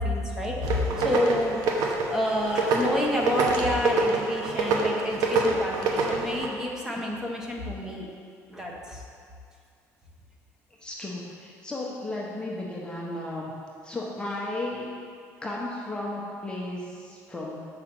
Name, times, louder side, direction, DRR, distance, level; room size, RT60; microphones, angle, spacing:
voice 1, 0.0-1.6 1.8-8.1 8.5-9.0, left 1 dB, 10° right, -2 dB, 1.1 m, -29 dB
sound 1, 0.6-6.5, right 3 dB, 75° right, 0.9 m, -26 dB
voice 2, 10.8-13.5 13.8-14.9 15.4-17.6, left 2 dB, 15° left, -4 dB, 0.9 m, -34 dB
6.6 x 4.9 x 5.9 m, 2.3 s
cardioid pair, 120°, 6 cm